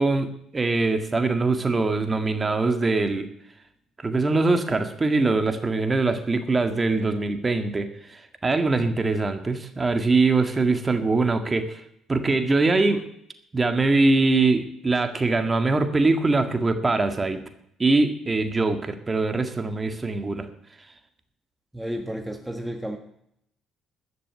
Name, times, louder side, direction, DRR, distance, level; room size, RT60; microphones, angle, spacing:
voice 1, 0.0-3.3 4.0-11.8 12.1-13.0 13.5-17.4 17.8-20.5, right 3 dB, 25° right, 8 dB, 1.8 m, -22 dB
voice 2, 21.7-23.0, equal, 5° right, 5 dB, 1.5 m, -32 dB
13.5 x 6.7 x 9.3 m, 0.74 s
supercardioid pair, 75°, 0 cm